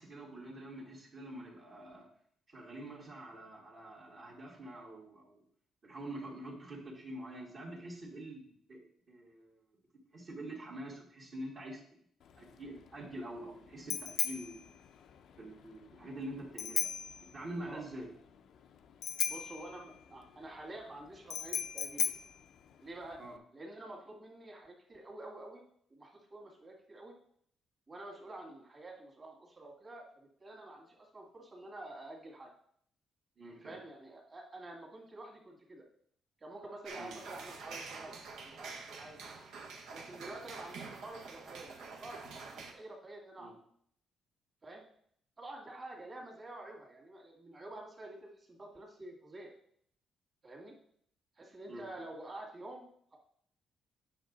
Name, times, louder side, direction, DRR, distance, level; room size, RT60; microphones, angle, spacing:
voice 1, 0.0-2.1 2.5-5.4 5.8-9.6 10.1-12.0 12.3-14.7 15.4-16.9 17.2-18.1 23.2-23.4 33.4-33.8 37.0-37.1 43.4-43.5 51.7-51.8, right 1 dB, 50° right, -4 dB, 1.9 m, -46 dB
Bicycle bell, 12.2-23.4, left 8 dB, 70° left, 0.5 m, -39 dB
voice 2, 19.3-22.1 22.8-23.2 23.5-25.6 25.9-27.1 27.9-32.5 33.4-35.8 36.4-39.3 39.9-43.5 44.6-44.8 45.4-49.5 50.4-50.7 51.4-53.2, right 2 dB, 30° right, 0 dB, 2.2 m, -49 dB
sound 1, 36.8-42.7, right 4 dB, 80° right, 1.1 m, -47 dB
8.0 x 5.9 x 3.9 m, 0.64 s
cardioid pair, 90°, 0 cm